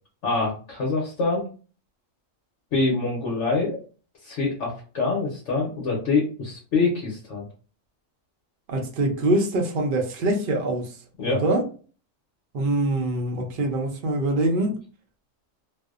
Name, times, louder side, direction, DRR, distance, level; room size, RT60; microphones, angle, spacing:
voice 1, 0.2-1.4 2.7-3.8 4.2-7.5 11.2-11.4, left 3 dB, 65° left, 1.0 m, -25 dB
voice 2, 8.7-11.6 12.5-14.8, right 1 dB, 55° right, 0.6 m, -24 dB
2.6 x 2.0 x 2.4 m
omnidirectional pair, 1.3 m